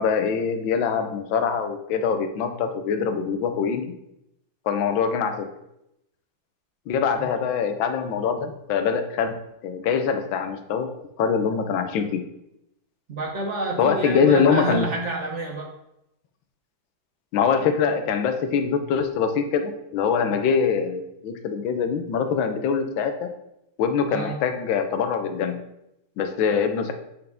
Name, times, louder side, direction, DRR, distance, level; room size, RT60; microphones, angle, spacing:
voice 1, 0.0-3.8 4.7-5.5 6.9-9.3 9.6-10.9 11.2-12.2 13.8-14.9 17.3-23.3 23.8-25.6 26.2-26.9, left 6 dB, 90° left, 7 dB, 1.5 m, -23 dB
voice 2, 13.1-15.7 17.8-17.9 24.1-24.4, right 2 dB, 50° right, 1 dB, 0.9 m, -29 dB
7.9 x 5.2 x 3.5 m, 0.83 s
omnidirectional pair, 2.1 m